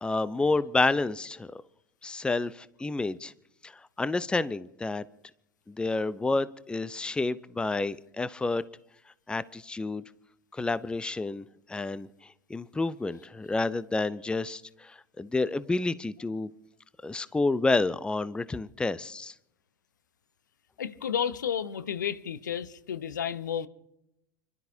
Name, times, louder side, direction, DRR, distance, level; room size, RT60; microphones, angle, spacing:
voice 1, 0.0-1.6 2.0-3.3 3.6-3.7 4.0-5.0 5.7-8.6 9.3-10.0 10.5-12.1 12.5-16.5 17.0-19.3, left 3 dB, 10° left, 0.6 m, -29 dB
voice 2, 20.8-23.7, left 8 dB, 75° left, 0.8 m, -32 dB
29.5 x 12.5 x 2.8 m
figure-of-eight pair, 80°, 10 cm